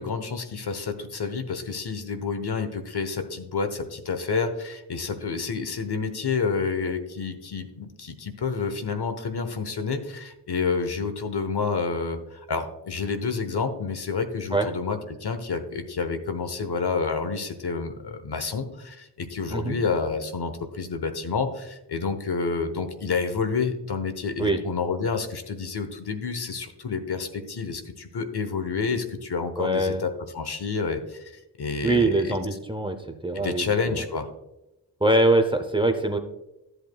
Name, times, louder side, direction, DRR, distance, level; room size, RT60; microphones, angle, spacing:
voice 1, 0.0-32.4 33.3-34.3, left 5 dB, 60° left, 8 dB, 1.1 m, -29 dB
voice 2, 29.6-30.0 31.8-33.0 33.2-34.0 35.0-36.2, right 2 dB, 10° right, 7 dB, 0.7 m, -23 dB
13.0 x 8.0 x 2.3 m, 0.93 s
wide cardioid pair, 120°, 44 cm